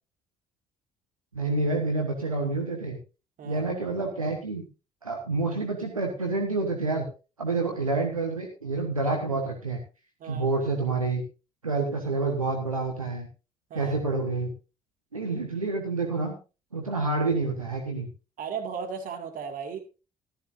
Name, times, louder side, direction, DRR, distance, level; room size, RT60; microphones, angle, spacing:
voice 1, 1.3-3.0 3.4-4.6 5.0-7.1 7.4-9.8 10.2-11.2 11.6-13.3 13.7-14.5 15.1-16.3 16.7-18.1, right 3 dB, 85° right, 2 dB, 1.4 m, -28 dB
voice 2, 18.4-19.8, right 6 dB, 50° right, 5 dB, 2.3 m, -35 dB
14.0 x 13.0 x 2.6 m, 0.31 s
figure-of-eight pair, 45°, 17 cm